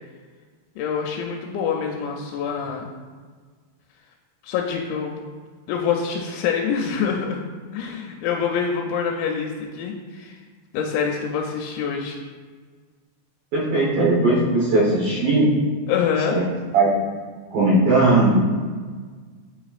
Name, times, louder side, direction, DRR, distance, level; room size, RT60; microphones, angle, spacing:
voice 1, 0.8-2.9 4.4-5.2 5.7-7.4 7.7-10.4 10.7-12.2 15.9-16.4, left 6 dB, 85° left, 0 dB, 2.9 m, -25 dB
voice 2, 13.5-15.5 16.3-16.4 16.7-16.9 17.5-18.4, right 2 dB, 65° right, -6 dB, 2.5 m, -18 dB
9.3 x 4.9 x 2.4 m, 1.5 s
omnidirectional pair, 5.2 m